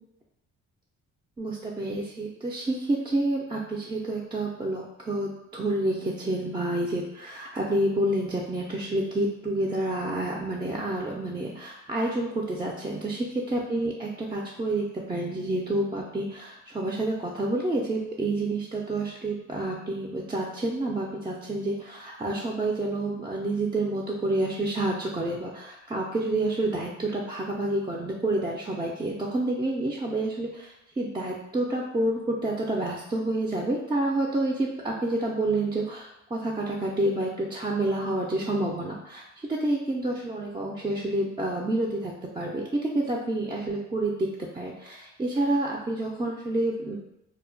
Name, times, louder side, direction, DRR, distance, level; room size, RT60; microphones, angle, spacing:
voice 1, 1.4-39.2 39.5-46.9, right 2 dB, 15° right, -2 dB, 0.3 m, -29 dB
2.1 x 2.0 x 3.7 m, 0.87 s
cardioid pair, 90°, 30 cm